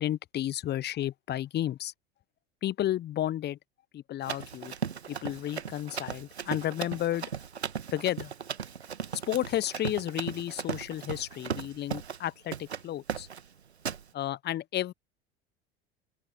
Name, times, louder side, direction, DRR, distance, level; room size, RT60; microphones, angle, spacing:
voice 1, 0.0-1.9 2.6-3.6 3.9-4.7 5.1-7.3 7.9-8.3 9.3-13.3 14.1-14.9, left 12 dB, 35° left, 0.8 m, -32 dB
Run, 4.2-12.3 12.5-12.8 13.1-13.5 13.9-14.0, right 7 dB, 85° right, 1.4 m, -37 dB
open air
figure-of-eight pair, 75°, 32 cm